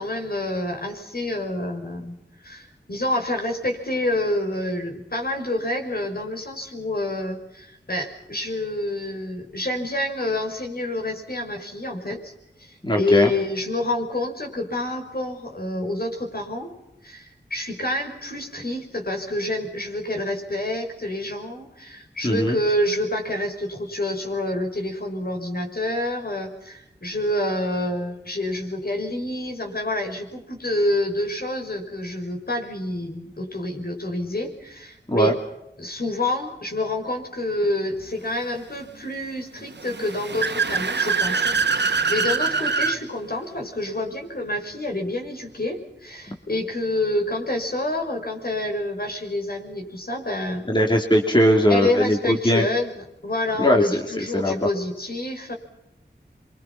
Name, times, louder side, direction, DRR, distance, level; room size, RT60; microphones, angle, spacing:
voice 1, 0.0-2.2 2.4-12.3 12.6-16.7 17.0-35.3 35.8-50.6 51.7-55.6, left 1 dB, 60° left, 3 dB, 5.9 m, -28 dB
voice 2, 12.8-13.3 22.2-22.6 35.1-35.3 50.7-52.6 53.6-54.0 54.3-54.6, equal, 25° left, 1 dB, 2.9 m, -19 dB
Car / Accelerating revving vroom, 39.8-43.0, right 5 dB, 75° right, 1.4 m, -23 dB
27.5 x 24.0 x 5.9 m, 0.86 s
wide cardioid pair, 55°, 18 cm